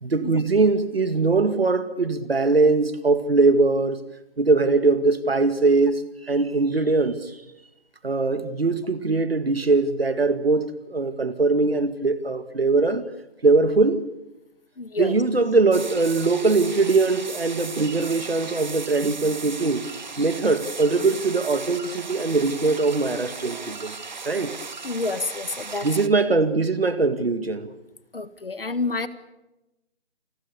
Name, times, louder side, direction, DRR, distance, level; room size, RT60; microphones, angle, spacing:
voice 1, 0.0-4.0 4.4-7.3 8.0-13.0 13.4-14.1 15.0-19.8 20.2-24.0 24.3-24.6 25.8-27.7, right 3 dB, 65° right, 2.1 m, -21 dB
voice 2, 14.8-15.2 24.8-25.9 28.1-29.1, left 3 dB, 60° left, 1.7 m, -28 dB
sound 1, 15.7-26.1, right 4 dB, 45° right, 1.1 m, -37 dB
28.5 x 20.5 x 6.9 m
figure-of-eight pair, 160°, 33 cm